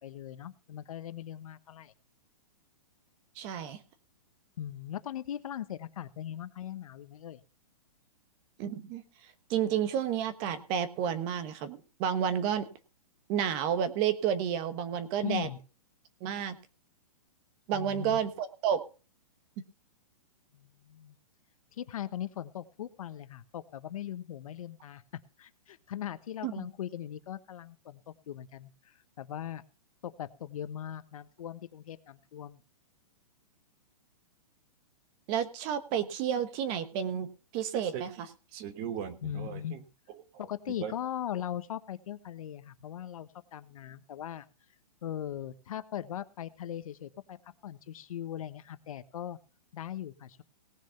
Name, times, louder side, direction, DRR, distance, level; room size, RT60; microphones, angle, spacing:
voice 1, 0.0-1.9 4.6-7.4 15.2-15.6 17.7-18.2 20.5-21.2 21.7-25.0 25.4-29.6 30.0-32.6 39.2-39.8 40.4-44.5 45.0-47.4 47.6-49.4 49.7-50.4, left 10 dB, 60° left, 13 dB, 1.1 m, -39 dB
voice 2, 3.3-3.8 8.6-12.6 13.3-15.5 16.2-16.6 17.7-18.8 26.4-26.7 35.3-37.3 37.5-39.8 40.8-40.9, right 9 dB, 25° right, 12 dB, 1.2 m, -31 dB
18.0 x 6.4 x 5.7 m, 0.35 s
hypercardioid pair, 160°, 20 cm